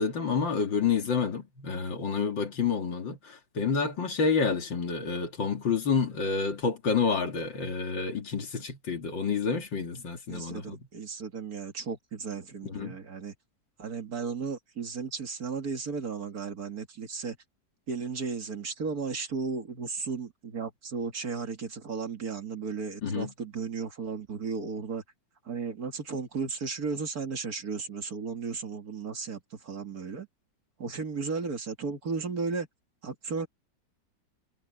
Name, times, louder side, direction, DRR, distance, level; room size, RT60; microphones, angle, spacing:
voice 1, 0.0-10.8 12.6-13.0 23.0-23.3, left 5 dB, 90° left, 3.1 m, -29 dB
voice 2, 10.3-13.3 13.8-17.4 17.9-25.0 25.4-30.3 30.8-32.7 33.0-33.5, right 5 dB, 55° right, 2.5 m, -35 dB
omnidirectional pair, 2.0 m